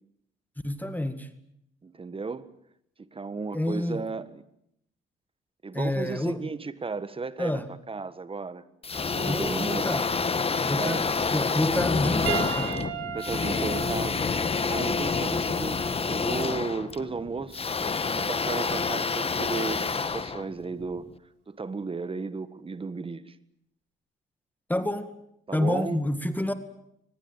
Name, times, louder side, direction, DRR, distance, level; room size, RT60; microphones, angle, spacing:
voice 1, 0.6-1.3 3.5-4.1 5.7-6.5 7.4-7.7 9.2-10.1 10.6-12.9 24.7-25.1 25.5-26.5, left 1 dB, 10° left, 2.0 m, -28 dB
voice 2, 1.8-2.5 3.0-4.4 5.6-7.6 7.9-8.6 9.1-9.9 10.8-11.0 13.1-14.2 14.7-17.6 18.1-21.1 21.5-23.4 25.5-26.0, right 4 dB, 25° right, 1.5 m, -34 dB
sound 1, 8.8-21.0, left 4 dB, 30° left, 1.5 m, -28 dB
Piano, 12.3-16.9 17.9-18.0 20.0-20.1, right 9 dB, 90° right, 3.3 m, -37 dB
24.0 x 20.5 x 9.0 m
cardioid pair, 90°, 20 cm